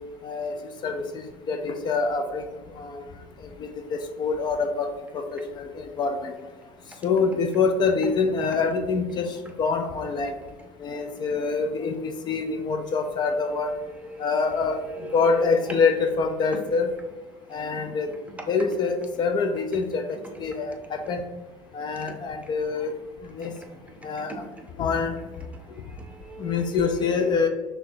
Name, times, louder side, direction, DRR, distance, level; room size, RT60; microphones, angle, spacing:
voice 1, 0.2-0.5 0.8-2.5 2.8-3.0 3.6-6.4 7.0-10.3 10.8-13.7 14.2-16.9 17.5-18.1 18.5-21.3 21.7-22.9 23.3-23.5 24.0-24.5 24.8-25.2 26.4-27.5, left 4 dB, 40° left, 6 dB, 0.4 m, -26 dB
voice 2, 13.8-15.7 17.9-18.0 23.4-23.5 25.9-27.5, right 3 dB, 10° right, 3 dB, 0.7 m, -40 dB
5.9 x 2.2 x 2.6 m, 1.3 s
supercardioid pair, 95°, 11 cm